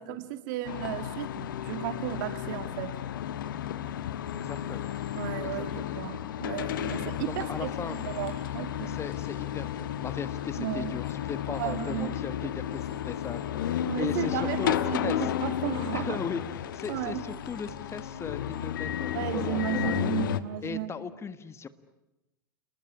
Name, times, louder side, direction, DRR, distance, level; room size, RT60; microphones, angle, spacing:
voice 1, 0.0-3.0 5.1-9.0 10.6-11.0 11.5-12.1 13.8-16.2 16.9-17.2 19.1-20.9, right 13 dB, 60° right, 11 dB, 2.0 m, -34 dB
sound 1, 0.6-20.4, left 10 dB, 70° left, 1.2 m, -33 dB
Human voice / Train, 4.3-5.3 6.7-7.5 7.8-8.4 9.2-9.3 11.0-11.1 11.5-12.0 12.7-13.5 14.5-14.8 15.7-16.0 17.3-17.7 18.5-18.7, left 4 dB, 50° left, 6.6 m, -57 dB
voice 2, 4.3-4.9 5.4-6.0 6.9-8.0 8.9-15.2 15.9-16.4 16.7-20.1 20.6-21.7, left 6 dB, 25° left, 13 dB, 1.5 m, -38 dB
29.5 x 20.0 x 9.6 m, 0.94 s
figure-of-eight pair, 85°, 11 cm